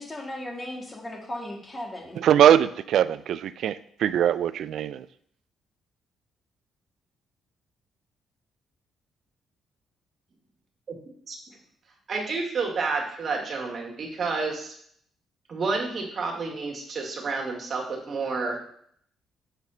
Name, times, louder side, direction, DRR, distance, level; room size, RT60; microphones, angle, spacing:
voice 1, 0.0-2.2, left 1 dB, 25° left, 1 dB, 1.8 m, -36 dB
voice 2, 2.2-5.0, right 10 dB, 70° right, 15 dB, 0.3 m, -21 dB
voice 3, 12.1-14.7 15.5-18.6, right 4 dB, 45° right, 0 dB, 1.8 m, -30 dB
6.8 x 4.1 x 5.6 m, 0.65 s
cardioid pair, 105°, 0 cm